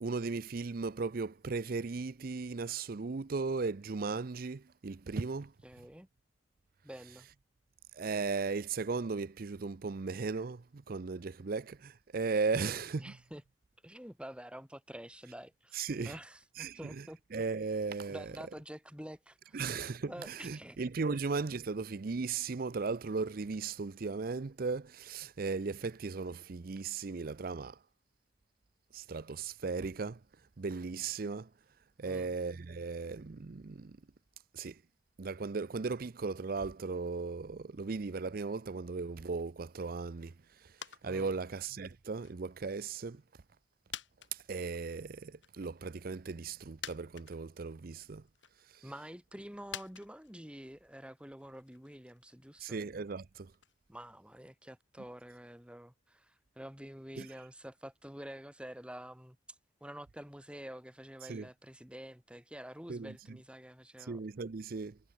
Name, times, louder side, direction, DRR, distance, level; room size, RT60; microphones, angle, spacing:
voice 1, 0.0-5.5 7.9-13.2 15.7-16.2 16.6-17.0 17.3-18.3 19.5-27.8 28.9-30.2 30.6-31.5 32.0-34.0 34.5-34.8 35.2-40.3 41.0-43.2 44.3-48.2 52.6-53.5 57.2-57.3 61.3-61.5 62.9-63.4 64.1-65.0, right 4 dB, 55° right, 0.5 m, -36 dB
voice 2, 5.6-6.1 6.8-7.3 12.5-13.4 13.8-17.2 18.1-19.6 20.1-20.8 21.1-21.2 32.0-32.4 41.0-41.4 48.8-52.8 53.9-59.4 59.8-64.2, equal, 5° right, 3.2 m, -48 dB
sound 1, 40.8-41.1 41.4-42.6 43.1-43.2 43.9-45.0 45.4-45.5 46.4-46.5 46.8-47.7 48.1-48.7 49.7-53.8 54.1-54.2, left 9 dB, 90° left, 5.9 m, -48 dB
head